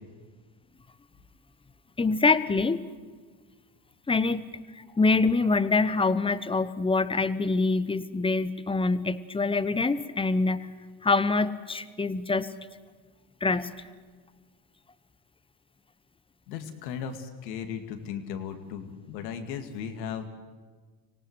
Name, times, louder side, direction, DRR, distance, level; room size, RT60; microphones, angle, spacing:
voice 1, 2.0-2.8 4.1-4.4 4.8-10.7 11.0-12.5 13.4-13.7, left 3 dB, 10° left, 15 dB, 0.9 m, -25 dB
voice 2, 16.5-20.3, left 7 dB, 90° left, 6 dB, 2.4 m, -36 dB
25.5 x 18.0 x 8.1 m, 1.5 s
supercardioid pair, 95°, 50 cm